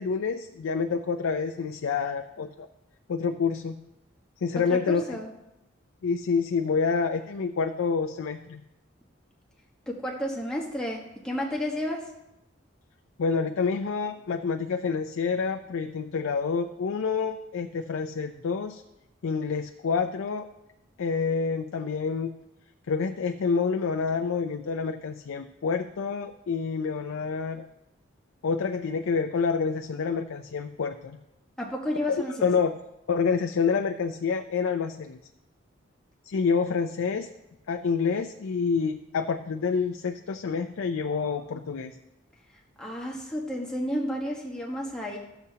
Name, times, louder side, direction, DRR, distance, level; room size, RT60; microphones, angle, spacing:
voice 1, 0.0-2.7 3.1-3.8 4.4-5.2 6.0-8.6 13.2-18.8 19.2-20.5 21.0-22.3 22.9-27.7 28.4-31.2 32.4-32.8 33.1-35.2 36.2-37.3 37.7-42.0, left 5 dB, 85° left, 6 dB, 0.4 m, -28 dB
voice 2, 4.7-5.3 9.9-12.1 31.6-32.5 42.8-45.2, left 1 dB, 5° left, -3 dB, 1.1 m, -31 dB
12.5 x 6.9 x 2.8 m, 0.90 s
head